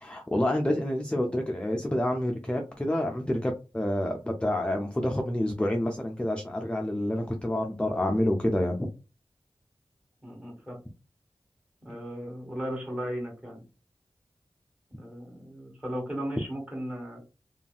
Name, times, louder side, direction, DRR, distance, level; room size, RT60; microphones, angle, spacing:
voice 1, 0.0-8.9, left 1 dB, 10° left, 0.4 m, -28 dB
voice 2, 10.2-10.8 11.8-13.6 15.0-17.2, equal, 10° right, 1.4 m, -36 dB
3.1 x 2.6 x 2.3 m
wide cardioid pair, 85°, 10 cm